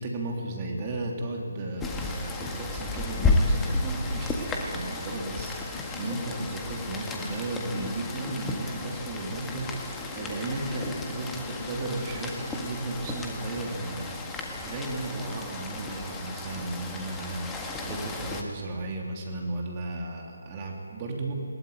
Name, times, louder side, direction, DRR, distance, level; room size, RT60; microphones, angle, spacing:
voice 1, 0.0-21.3, right 2 dB, 25° right, 0 dB, 3.1 m, -35 dB
Rain, 1.8-18.4, left 3 dB, 10° left, 1.7 m, -33 dB
sound 1, 5.7-13.0, left 5 dB, 35° left, 1.7 m, -43 dB
20.5 x 18.0 x 9.4 m, 2.4 s
figure-of-eight pair, 150°, 0 cm